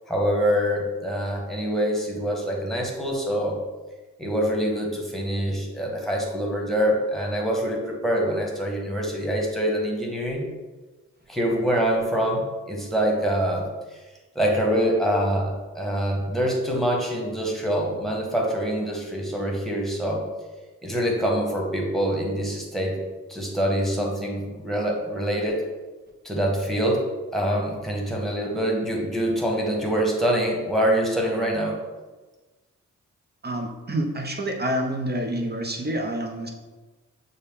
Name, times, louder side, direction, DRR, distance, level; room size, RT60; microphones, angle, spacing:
voice 1, 0.1-3.6 4.2-10.5 11.3-13.7 14.3-20.2 20.8-23.0 23.3-25.6 26.2-27.0 27.3-31.8, equal, ahead, -1 dB, 1.3 m, -25 dB
voice 2, 33.4-36.5, right 1 dB, 30° right, 2 dB, 0.8 m, -28 dB
6.4 x 2.2 x 3.6 m, 1.2 s
supercardioid pair, 40°, 33 cm